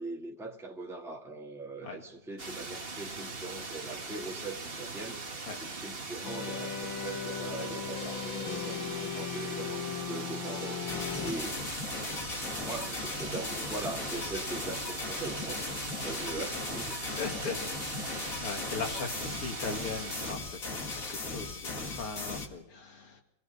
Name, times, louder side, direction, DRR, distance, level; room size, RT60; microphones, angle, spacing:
voice 1, 0.0-5.2 5.5-11.6 12.6-17.2, right 3 dB, ahead, 0 dB, 1.9 m, -41 dB
sound 1, 2.4-20.3, right 3 dB, 30° right, 1.8 m, -41 dB
sound 2, 6.2-11.3, left 8 dB, 65° left, 1.9 m, -37 dB
sound 3, 10.9-22.5, left 3 dB, 40° left, 2.4 m, -37 dB
voice 2, 16.0-16.3 17.1-17.6 18.0-23.2, left 4 dB, 85° left, 3 dB, 3.4 m, -39 dB
27.5 x 19.0 x 5.8 m, 0.69 s
omnidirectional pair, 2.3 m